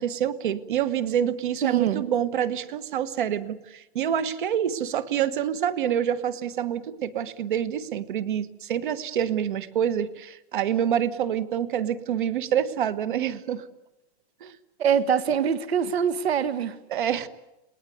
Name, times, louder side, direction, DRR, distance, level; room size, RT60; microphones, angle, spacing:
voice 1, 0.0-13.6 14.4-14.5 16.9-17.3, right 9 dB, 50° right, 1.4 m, -27 dB
voice 2, 1.6-2.0 14.8-16.8, right 7 dB, 70° right, 1.6 m, -24 dB
29.5 x 20.0 x 9.4 m
hypercardioid pair, 180°, 33 cm